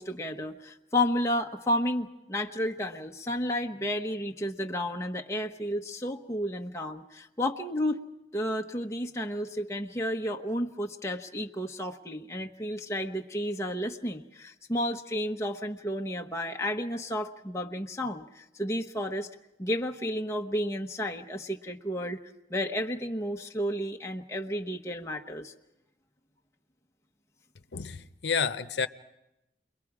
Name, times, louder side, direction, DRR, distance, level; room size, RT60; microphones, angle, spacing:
voice 1, 0.0-8.0 8.3-19.3 19.6-22.2 22.5-25.5, left 1 dB, 15° left, 0.9 m, -32 dB
voice 2, 27.7-28.9, left 6 dB, 85° left, 0.7 m, -30 dB
29.5 x 22.0 x 4.9 m
head